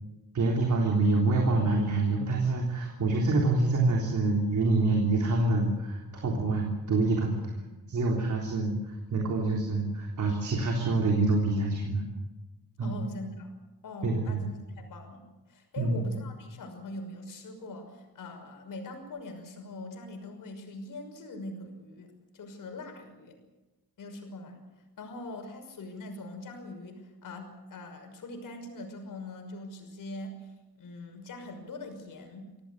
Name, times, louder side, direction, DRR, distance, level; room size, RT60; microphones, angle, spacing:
voice 1, 0.3-7.5 7.9-12.1 12.8-13.0 14.0-14.4 15.8-16.1, right 2 dB, 50° right, 0 dB, 3.7 m, -26 dB
voice 2, 12.8-13.5 13.8-14.5 14.8-23.4 24.0-24.6 25.0-32.5, left 2 dB, 60° left, 5 dB, 6.0 m, -42 dB
26.0 x 17.5 x 8.2 m, 1.1 s
wide cardioid pair, 165°, 37 cm